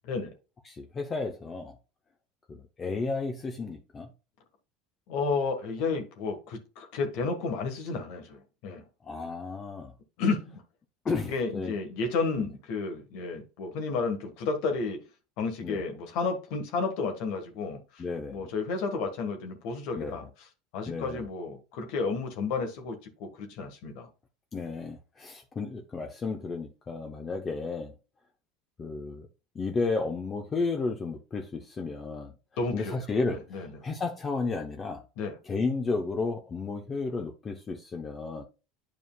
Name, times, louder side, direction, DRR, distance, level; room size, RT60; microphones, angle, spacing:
voice 1, 0.6-1.7 2.5-4.1 9.0-9.9 11.0-11.7 12.4-12.5 15.6-15.8 18.0-18.5 20.0-20.3 20.9-21.3 24.5-27.9 28.8-29.3 29.5-32.3 32.7-35.0 35.4-38.4, left 3 dB, 25° left, 0.9 m, -33 dB
voice 2, 5.1-8.8 10.2-10.6 11.3-15.0 15.4-18.0 18.3-20.2 20.7-24.1 32.6-33.0 33.3-33.7 35.2-35.3, left 4 dB, 65° left, 1.5 m, -32 dB
9.4 x 4.9 x 2.3 m
supercardioid pair, 105°, 0 cm